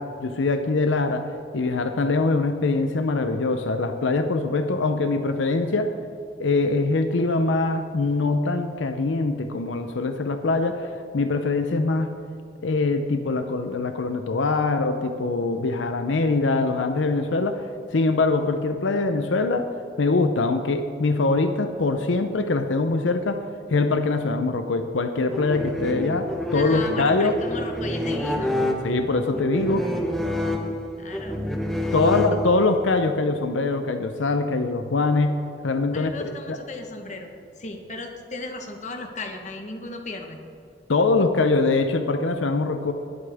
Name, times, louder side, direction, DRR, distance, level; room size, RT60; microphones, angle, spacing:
voice 1, 0.0-5.9 6.4-12.1 12.6-17.6 17.9-19.7 20.0-23.4 23.7-27.4 28.8-29.9 31.9-35.4 35.6-36.6 40.9-42.9, left 3 dB, 85° left, 7 dB, 0.6 m, -23 dB
sound 1, 25.3-32.8, left 1 dB, ahead, 0.9 m, -28 dB
voice 2, 26.5-28.6 31.0-31.4 31.9-32.2 35.9-37.3 37.6-40.4, left 2 dB, 40° left, 4 dB, 1.2 m, -35 dB
20.0 x 8.7 x 3.5 m, 2.4 s
head